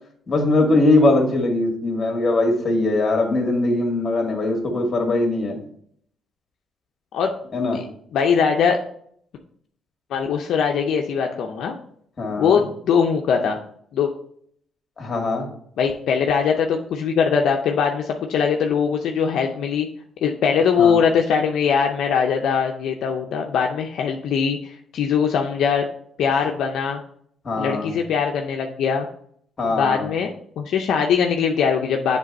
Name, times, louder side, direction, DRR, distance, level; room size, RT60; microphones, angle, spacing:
voice 1, 0.3-5.6 7.5-7.8 12.2-12.6 15.0-15.5 20.8-21.0 27.4-27.9 29.6-30.1, left 2 dB, 40° left, 2 dB, 1.9 m, -21 dB
voice 2, 8.1-8.8 10.1-11.8 12.4-13.6 13.9-14.1 15.8-19.9 20.2-25.8 26.2-27.0 27.6-29.1 29.7-32.2, left 6 dB, 75° left, 2 dB, 0.5 m, -21 dB
7.4 x 3.4 x 4.1 m, 0.65 s
cardioid pair, 90°, 0 cm